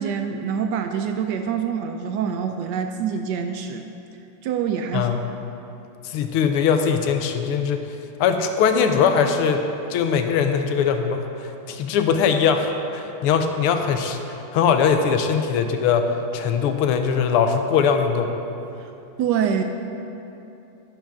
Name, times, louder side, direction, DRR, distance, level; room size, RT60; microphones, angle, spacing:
voice 1, 0.0-3.9 4.4-5.1 19.2-19.6, right 7 dB, 85° right, 6 dB, 0.9 m, -25 dB
voice 2, 6.0-7.8 8.2-9.6 9.9-18.3, left 6 dB, 85° left, 6 dB, 1.7 m, -21 dB
11.5 x 11.5 x 3.7 m, 2.8 s
omnidirectional pair, 2.4 m